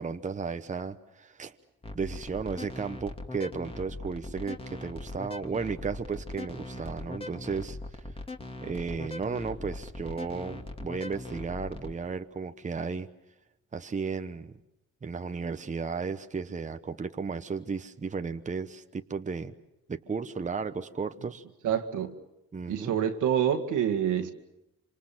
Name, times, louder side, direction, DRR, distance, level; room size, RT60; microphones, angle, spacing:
voice 1, 0.0-1.6 1.9-8.1 8.6-13.1 13.7-14.5 15.0-19.5 19.9-21.4 22.5-22.9, right 5 dB, 25° right, 1.0 m, -34 dB
sound 1, 1.8-11.9, left 2 dB, 20° left, 2.6 m, -40 dB
voice 2, 21.6-22.1 22.7-24.3, right 9 dB, 80° right, 2.1 m, -27 dB
26.0 x 26.0 x 7.5 m
cardioid pair, 90°, 30 cm